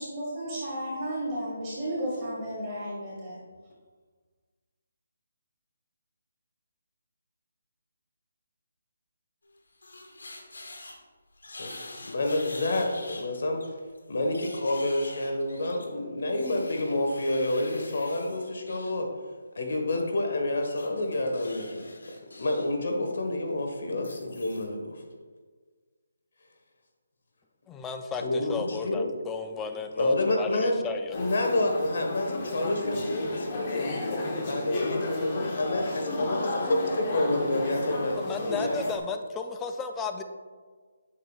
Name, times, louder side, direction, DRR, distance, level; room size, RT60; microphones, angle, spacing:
voice 1, 0.0-3.4, equal, 20° right, -8 dB, 2.0 m, -33 dB
sound 1, 9.5-11.0 11.4-13.3 13.6-18.9 20.7-22.7 23.0-23.3 23.9-24.7, left 2 dB, 80° left, 1.2 m, -45 dB
voice 2, 11.5-13.6 14.1-19.1 19.5-21.9 22.4-25.0 28.2-29.1 30.0-30.8 31.1-33.9 34.4-38.8, left 1 dB, 65° left, 3 dB, 1.4 m, -28 dB
voice 3, 27.7-31.2 38.2-40.2, left 5 dB, 10° left, 6 dB, 0.4 m, -34 dB
sound 2, 31.1-39.0, left 2 dB, 35° left, 1.1 m, -32 dB
8.8 x 6.6 x 2.4 m, 1.5 s
figure-of-eight pair, 160°, 0 cm